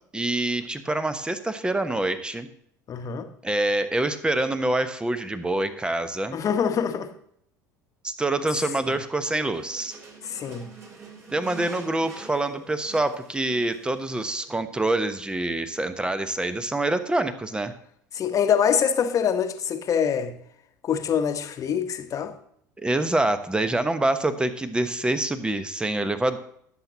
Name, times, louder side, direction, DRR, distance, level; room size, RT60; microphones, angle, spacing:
voice 1, 0.1-2.5 3.4-6.4 8.0-10.0 11.3-17.7 22.8-26.4, right 2 dB, 10° right, 1.0 m, -26 dB
voice 2, 2.9-3.3 6.3-7.1 10.2-10.7 18.1-20.3 20.8-22.3, left 7 dB, 35° left, 1.2 m, -24 dB
sound 1, 9.4-14.5, right 3 dB, 25° right, 3.4 m, -45 dB
17.5 x 8.0 x 2.9 m
figure-of-eight pair, 70°, 10 cm